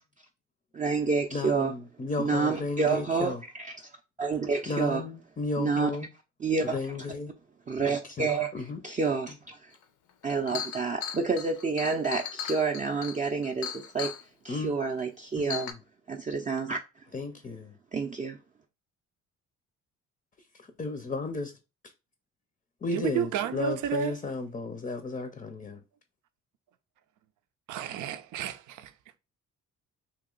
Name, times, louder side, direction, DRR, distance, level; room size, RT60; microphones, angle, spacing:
voice 1, 0.7-1.7 2.2-5.0 5.6-5.9 6.4-6.8 7.7-9.7 10.2-14.1 14.4-15.7 16.1-17.0 17.9-18.4, right 4 dB, 25° right, 0.5 m, -29 dB
voice 2, 1.3-3.4 4.7-6.1 6.7-7.3 8.2-8.8 14.5-14.7 15.4-15.7 17.1-17.7 20.8-21.5 22.8-25.8, left 3 dB, 25° left, 0.5 m, -34 dB
Chink clink, 9.8-9.9 10.2-14.2 15.0-15.1 15.5-15.7, left 8 dB, 80° left, 0.7 m, -37 dB
voice 3, 22.9-24.2 27.7-28.9, right 9 dB, 80° right, 0.5 m, -31 dB
2.9 x 2.7 x 3.8 m
cardioid pair, 90°, 30 cm